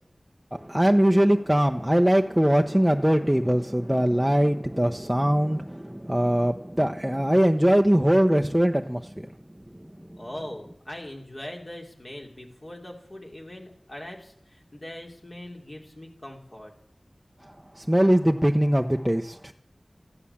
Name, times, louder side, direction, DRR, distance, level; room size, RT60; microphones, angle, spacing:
voice 1, 0.5-9.1 17.8-19.5, equal, 10° right, 3 dB, 0.8 m, -21 dB
voice 2, 10.2-16.7, left 1 dB, 45° left, 1 dB, 3.5 m, -41 dB
14.0 x 10.5 x 7.2 m, 0.69 s
wide cardioid pair, 45°, 0 cm